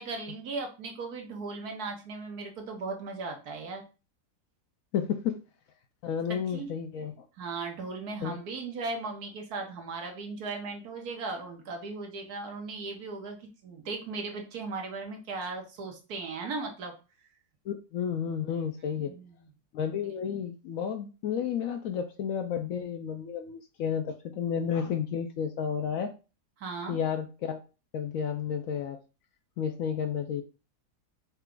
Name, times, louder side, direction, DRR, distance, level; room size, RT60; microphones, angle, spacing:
voice 1, 0.0-3.8 6.3-6.7 7.4-16.9 19.0-19.5 26.6-27.0, right 3 dB, 70° right, 2 dB, 1.5 m, -37 dB
voice 2, 4.9-5.4 6.0-7.2 8.2-8.4 17.7-19.1 19.7-26.1 26.9-27.6 27.9-29.0 29.6-30.4, left 8 dB, 70° left, 7 dB, 0.8 m, -31 dB
5.6 x 2.4 x 3.7 m, 0.31 s
omnidirectional pair, 1.7 m